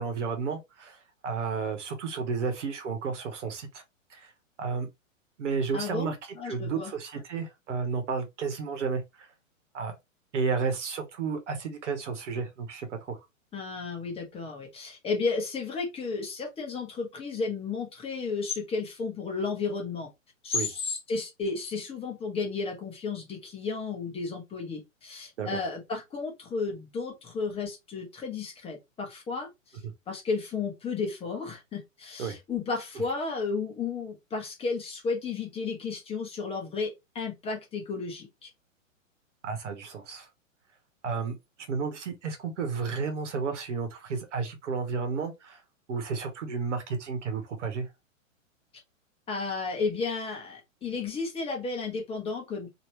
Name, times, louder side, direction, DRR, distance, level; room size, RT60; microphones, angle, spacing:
voice 1, 0.0-3.8 4.1-4.3 4.6-4.9 5.4-6.2 6.4-9.3 9.7-9.9 10.3-13.2 20.5-20.7 25.4-25.6 29.8-29.9 32.2-32.4 39.4-40.3 41.0-41.4 41.7-45.6 45.9-47.9, right 5 dB, 60° right, 1.2 m, -32 dB
voice 2, 5.7-6.9 13.5-20.1 20.4-29.8 30.1-38.5 49.3-52.7, left 4 dB, 15° left, 1.0 m, -33 dB
3.0 x 2.9 x 3.1 m
figure-of-eight pair, 115°, 40 cm